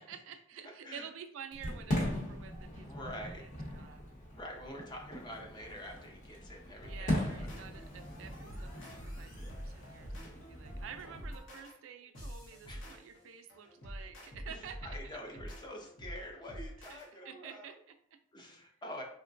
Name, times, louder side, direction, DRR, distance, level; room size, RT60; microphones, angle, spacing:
voice 1, 0.0-4.0 6.9-15.2 16.8-18.2, right 7 dB, 75° right, 8 dB, 0.3 m, -50 dB
Fireworks, 1.5-11.4, left 1 dB, 40° left, 1.0 m, -40 dB
voice 2, 2.8-3.4 4.3-7.5 12.7-13.0 14.8-17.7 18.3-19.0, left 1 dB, 20° left, 1 dB, 0.5 m, -46 dB
sound 1, 6.8-17.1, equal, 70° left, 0.9 m, -47 dB
3.7 x 2.1 x 2.5 m, 0.65 s
head